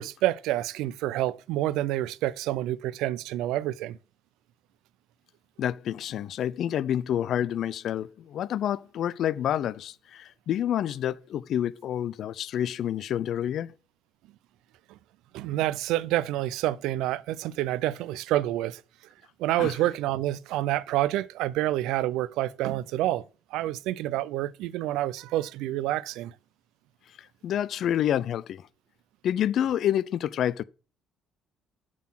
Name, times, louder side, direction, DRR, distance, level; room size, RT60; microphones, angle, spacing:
voice 1, 0.0-4.0 15.3-18.8 19.4-23.2 23.5-26.3, right 14 dB, 85° right, 0.3 m, -28 dB
voice 2, 5.6-13.7 19.6-19.8 27.4-28.6 29.2-30.6, left 10 dB, 65° left, 0.3 m, -28 dB
7.3 x 3.9 x 5.8 m
cardioid pair, 95°, 0 cm